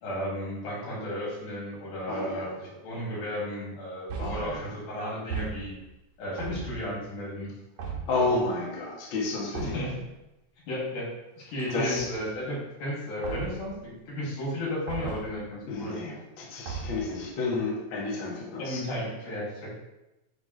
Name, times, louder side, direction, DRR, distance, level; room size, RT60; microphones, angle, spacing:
voice 1, 0.0-5.7 6.2-7.5 8.3-8.4 9.6-10.0 10.7-11.1 11.4-16.0 18.6-19.7, left 1 dB, 85° left, -6 dB, 3.8 m, -34 dB
voice 2, 2.1-2.6 4.2-4.7 7.8-9.8 11.7-12.1 15.7-18.8, left 3 dB, 50° left, -3 dB, 1.6 m, -31 dB
sound 1, 4.1-4.6 5.3-6.0 6.4-7.0 7.8-8.3 9.6-10.0 11.6-12.4 13.2-13.8 14.9-15.4 16.7-17.2, right 5 dB, 65° right, 2.0 m, -37 dB
9.1 x 3.5 x 3.2 m, 0.96 s
omnidirectional pair, 3.5 m